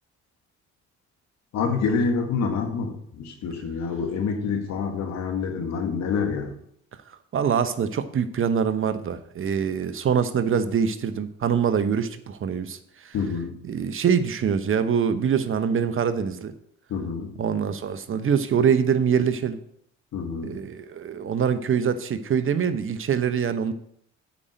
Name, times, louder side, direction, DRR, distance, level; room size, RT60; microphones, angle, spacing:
voice 1, 1.5-6.5 13.1-13.6 16.9-17.4 20.1-20.6, left 5 dB, 70° left, 4 dB, 2.0 m, -27 dB
voice 2, 7.3-13.1 13.7-16.5 17.4-19.6 20.4-23.7, right 7 dB, 45° right, 11 dB, 0.9 m, -24 dB
8.5 x 5.2 x 7.7 m, 0.69 s
supercardioid pair, 70°, 29 cm